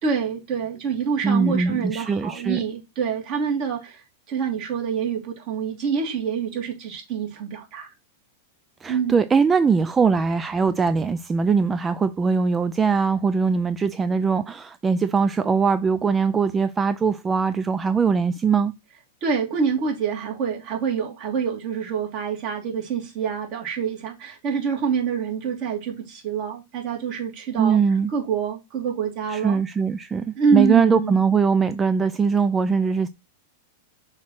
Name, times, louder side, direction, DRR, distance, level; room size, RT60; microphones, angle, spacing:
voice 1, 0.0-7.9 8.9-9.2 19.2-27.8 28.1-29.6 30.4-31.2, right 6 dB, 50° right, 2.9 m, -26 dB
voice 2, 1.2-2.6 8.8-18.7 27.6-28.1 29.3-33.1, right 5 dB, 20° right, 0.4 m, -21 dB
6.4 x 3.1 x 5.7 m
hypercardioid pair, 110°, 0 cm